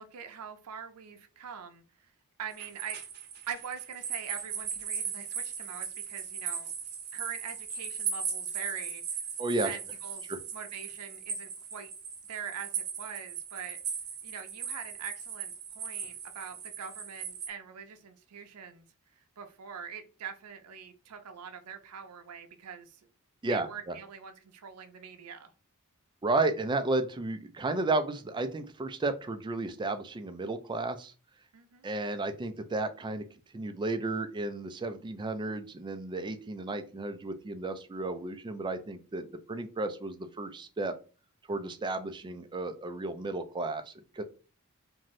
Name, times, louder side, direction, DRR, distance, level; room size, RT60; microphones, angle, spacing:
voice 1, 0.0-1.8 2.4-3.0 3.5-6.7 7.1-9.3 9.6-11.9 12.2-13.8 14.2-18.9 19.1-23.0 23.5-25.5 31.5-31.9, right 7 dB, 90° right, 7 dB, 0.5 m, -43 dB
sound 1, 2.5-17.5, right 7 dB, 50° right, 0.7 m, -38 dB
voice 2, 9.4-9.7 10.3-10.4 23.4-23.9 26.2-31.1 31.8-33.2 33.5-40.9 41.5-44.2, right 2 dB, 20° right, 8 dB, 0.3 m, -33 dB
2.6 x 2.5 x 3.1 m, 0.35 s
head